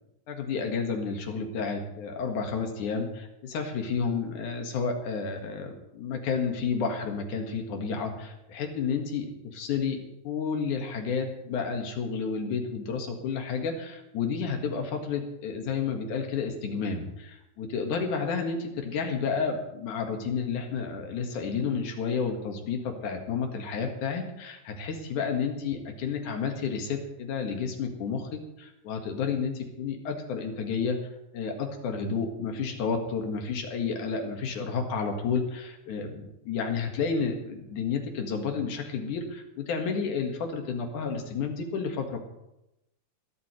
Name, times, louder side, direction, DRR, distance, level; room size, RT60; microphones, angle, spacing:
voice 1, 0.3-10.0 10.2-31.0 31.3-42.2, left 5 dB, 80° left, 3 dB, 3.2 m, -31 dB
21.5 x 12.0 x 3.2 m, 0.89 s
omnidirectional pair, 3.5 m